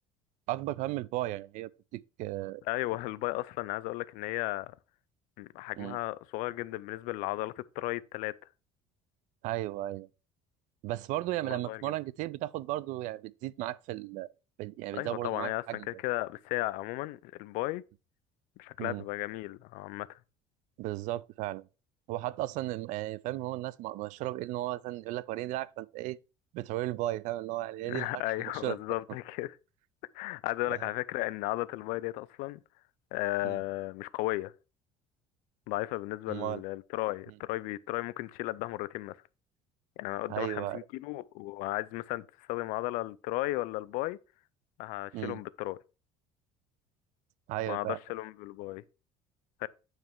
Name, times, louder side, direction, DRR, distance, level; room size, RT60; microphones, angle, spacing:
voice 1, 0.5-2.6 5.8-6.0 9.4-10.1 10.8-14.3 14.6-16.0 18.8-19.0 20.8-21.6 22.1-26.2 26.5-28.8 33.4-33.6 36.3-36.6 40.3-40.8 45.1-45.4 47.5-48.0, right 16 dB, 65° right, 0.4 m, -35 dB
voice 2, 2.7-4.7 5.4-8.4 11.4-11.8 14.9-17.8 18.6-20.2 27.9-29.6 30.1-32.6 33.1-34.5 35.7-39.2 40.0-44.2 44.8-45.8 47.7-48.8 49.6-49.7, left 19 dB, 75° left, 0.4 m, -35 dB
8.9 x 3.2 x 4.5 m
cardioid pair, 140°, 14 cm